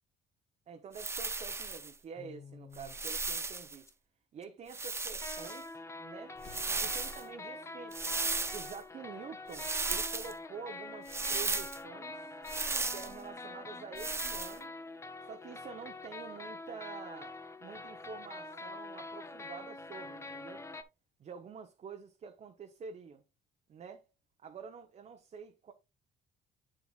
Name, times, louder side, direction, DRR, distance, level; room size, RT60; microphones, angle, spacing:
voice 1, 0.7-3.9 4.3-6.4 6.8-8.0 8.5-12.3 12.9-14.7 15.2-20.6 21.2-23.2 23.7-24.0 24.4-25.7, right 6 dB, 45° right, 1.1 m, -48 dB
sound 1, 0.9-1.9 2.7-3.8 4.7-5.6 6.4-7.2 7.9-8.8 9.5-10.3 11.1-11.8 12.5-13.1 14.0-14.6, right 3 dB, 15° right, 0.6 m, -35 dB
sound 2, 2.2-3.0 3.3-3.4 3.9-4.0 4.4-4.5 5.2-20.8, left 2 dB, 15° left, 0.8 m, -46 dB
Explosion, 6.3-7.5, left 4 dB, 40° left, 1.4 m, -55 dB
8.1 x 7.4 x 2.5 m
cardioid pair, 110°, 17 cm